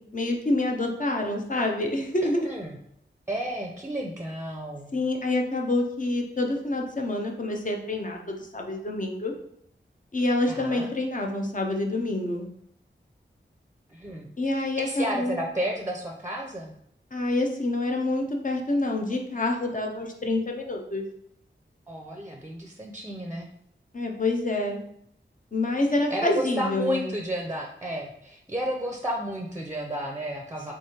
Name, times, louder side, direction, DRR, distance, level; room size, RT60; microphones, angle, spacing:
voice 1, 0.1-2.5 4.9-9.3 10.1-12.5 14.4-15.4 17.1-21.0 23.9-24.8 25.5-27.1, left 2 dB, 40° left, 1 dB, 0.8 m, -27 dB
voice 2, 2.2-2.8 3.3-4.9 10.5-10.9 13.9-14.3 14.5-16.7 21.9-23.5 26.1-30.7, equal, 15° right, 1 dB, 0.6 m, -32 dB
3.6 x 3.3 x 4.3 m, 0.72 s
wide cardioid pair, 90°, 20 cm